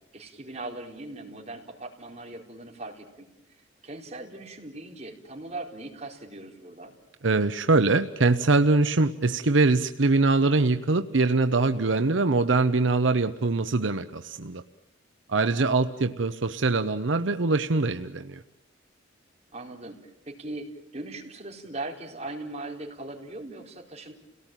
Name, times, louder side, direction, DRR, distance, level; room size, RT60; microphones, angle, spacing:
voice 1, 0.1-3.3 3.8-6.9 15.4-15.8 19.5-20.0 20.3-24.1, right 2 dB, 35° right, -1 dB, 4.5 m, -39 dB
voice 2, 7.2-14.6 15.3-18.4, right 3 dB, 75° right, 9 dB, 0.8 m, -23 dB
30.0 x 18.0 x 9.2 m, 0.94 s
head